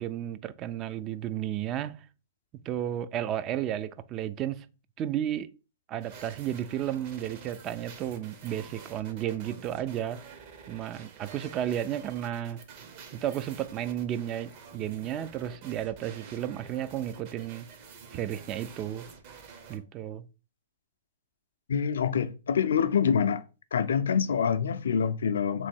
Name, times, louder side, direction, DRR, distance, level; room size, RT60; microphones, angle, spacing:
voice 1, 0.0-2.0 2.7-4.7 5.0-5.5 5.9-10.3 10.7-12.6 13.1-17.7 18.1-19.1 19.7-20.3, right 11 dB, 30° right, 0.3 m, -33 dB
sound 1, 6.0-19.8, right 5 dB, 45° right, 0.9 m, -49 dB
voice 2, 21.7-23.4 23.7-25.7, left 7 dB, 85° left, 0.4 m, -26 dB
3.7 x 3.0 x 4.4 m
hypercardioid pair, 140°, 0 cm